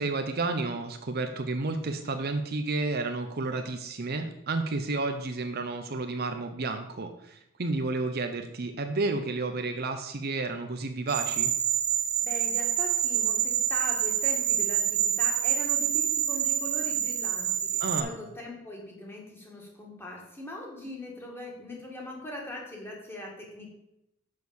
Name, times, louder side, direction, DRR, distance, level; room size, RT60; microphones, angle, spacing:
voice 1, 0.0-11.5 17.8-18.1, right 3 dB, 45° right, 6 dB, 0.7 m, -31 dB
sound 1, 11.1-18.0, right 10 dB, 75° right, 1.0 m, -27 dB
voice 2, 12.2-23.7, left 1 dB, 10° left, -2 dB, 2.0 m, -41 dB
6.4 x 6.4 x 7.0 m, 0.85 s
head